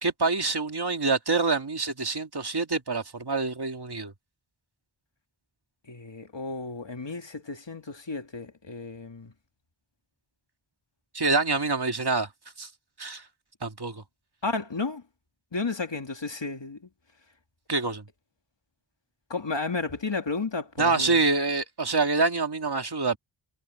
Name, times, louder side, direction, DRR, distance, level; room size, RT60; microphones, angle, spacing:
voice 1, 0.0-4.1 11.1-12.3 12.6-12.7 13.0-13.2 13.6-14.0 17.7-18.0 20.8-23.2, right 3 dB, 50° right, 2.0 m, -26 dB
voice 2, 5.9-9.3 14.4-15.0 15.5-16.9 19.3-21.2, left 3 dB, 60° left, 2.7 m, -33 dB
wide cardioid pair, 65°, 49 cm